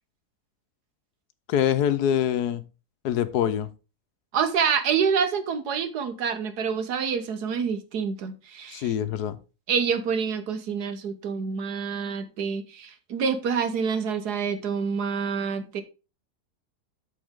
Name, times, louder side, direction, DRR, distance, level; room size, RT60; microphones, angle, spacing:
voice 1, 1.5-2.6 3.0-3.7 8.7-9.4, left 10 dB, 85° left, 1.3 m, -24 dB
voice 2, 4.3-8.9 9.7-15.8, right 6 dB, 90° right, 1.7 m, -27 dB
13.0 x 4.3 x 3.6 m
omnidirectional pair, 1.6 m